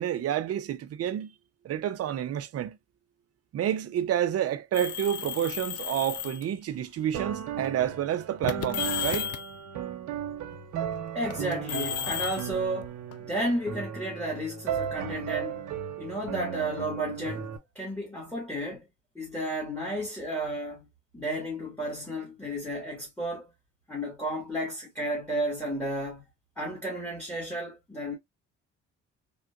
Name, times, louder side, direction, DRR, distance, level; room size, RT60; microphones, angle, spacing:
voice 1, 0.0-1.3 1.6-2.8 3.5-9.3, right 10 dB, 55° right, 0.5 m, -29 dB
sound 1, 4.7-6.4 7.3-7.7 8.4-9.5 11.3-13.4, left 10 dB, 55° left, 0.4 m, -34 dB
sound 2, 7.1-17.6, right 8 dB, 85° right, 0.8 m, -35 dB
voice 2, 11.1-15.6 16.0-17.5 17.7-18.9 19.1-20.9 21.1-23.5 23.9-26.2 26.6-28.1, right 1 dB, 5° left, 1.6 m, -32 dB
3.6 x 2.4 x 2.3 m
cardioid pair, 90°, 30 cm